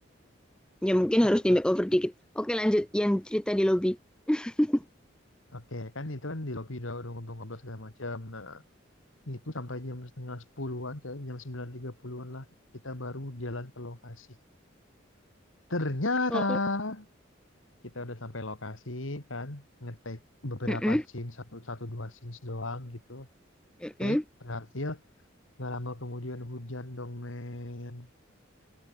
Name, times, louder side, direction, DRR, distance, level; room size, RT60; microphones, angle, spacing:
voice 1, 0.8-4.0 4.3-4.8 16.3-16.6 20.7-21.0 23.8-24.2, equal, 5° left, 0.4 m, -25 dB
voice 2, 5.5-8.6 9.3-12.5 12.8-14.3 15.7-17.1 17.8-23.3 24.0-24.2 24.4-25.0 25.6-28.1, left 2 dB, 80° left, 2.4 m, -36 dB
head